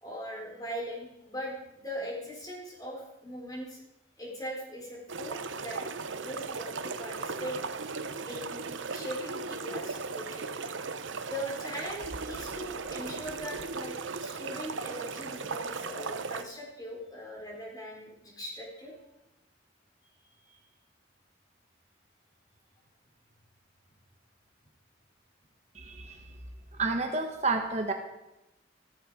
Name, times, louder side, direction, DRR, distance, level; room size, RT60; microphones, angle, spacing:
voice 1, 0.0-3.8 4.2-5.4 5.6-5.8 6.2-7.6 8.2-10.9 11.2-13.9 14.2-18.9 20.4-20.6, equal, 20° left, -2 dB, 4.5 m, -40 dB
sound 1, 5.1-16.4, right 4 dB, 85° right, 0.9 m, -37 dB
voice 2, 25.7-26.2 26.7-27.9, right 3 dB, 35° right, 4 dB, 1.2 m, -30 dB
14.5 x 14.5 x 5.0 m, 0.94 s
head